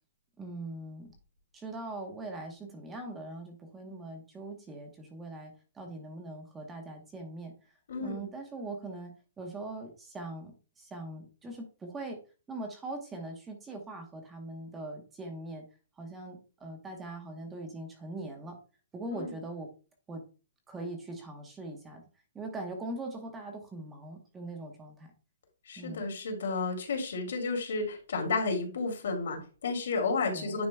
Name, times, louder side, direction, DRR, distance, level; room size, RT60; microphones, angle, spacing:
voice 1, 0.4-1.1 1.5-12.2 12.5-15.7 16.0-18.6 18.9-19.7 20.1-20.2 20.7-22.0 22.3-25.1 25.8-26.1 30.3-30.5, right 2 dB, 10° right, 3 dB, 1.0 m, -41 dB
voice 2, 7.9-8.2 19.1-19.3 25.7-30.7, left 4 dB, 70° left, 3 dB, 2.5 m, -32 dB
9.6 x 4.9 x 2.3 m, 0.35 s
hypercardioid pair, 165°, 0 cm